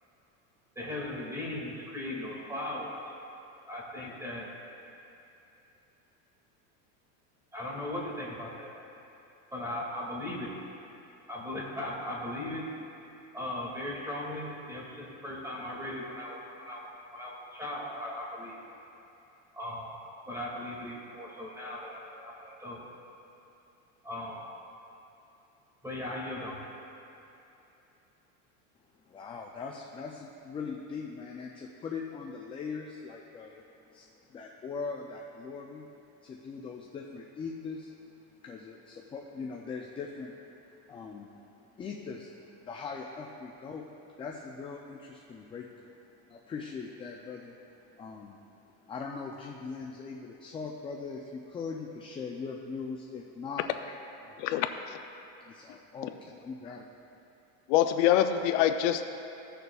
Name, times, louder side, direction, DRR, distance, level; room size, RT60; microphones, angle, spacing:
voice 1, 0.8-3.1 3.7-4.5 7.5-8.7 9.5-10.5 11.3-12.6 13.3-18.6 19.5-20.0 20.3-22.8 24.0-24.5 25.8-26.7, left 1 dB, 10° right, -5 dB, 2.0 m, -38 dB
voice 2, 29.0-33.6 33.9-35.8 36.2-38.1 38.4-43.8 44.2-46.0 46.3-48.5 48.7-53.7 54.2-54.5 55.5-57.1, left 5 dB, 15° left, 0 dB, 0.3 m, -41 dB
voice 3, 54.4-55.0 55.7-55.8 57.7-59.0, left 11 dB, 70° left, 8 dB, 0.5 m, -25 dB
16.5 x 6.7 x 2.3 m, 2.9 s
supercardioid pair, 135°, 37 cm